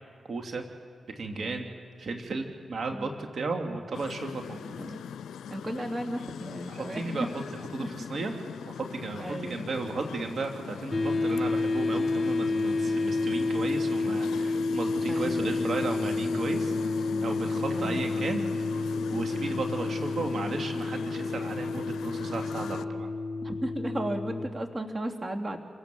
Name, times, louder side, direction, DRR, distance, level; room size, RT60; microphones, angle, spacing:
voice 1, 0.3-0.6 1.2-1.7 2.0-4.8 6.7-8.4 8.6-23.1, right 3 dB, 65° right, 3 dB, 2.5 m, -35 dB
sound 1, 3.9-22.8, left 7 dB, 85° left, 0.5 m, -40 dB
voice 2, 5.5-7.1 7.8-7.9 9.2-9.7 15.1-15.5 17.7-18.1 23.4-25.6, right 1 dB, 35° right, 4 dB, 2.8 m, -35 dB
sound 2, 10.9-24.5, left 3 dB, 45° left, 1.6 m, -30 dB
28.0 x 17.5 x 7.7 m, 2.3 s
supercardioid pair, 40°, 0 cm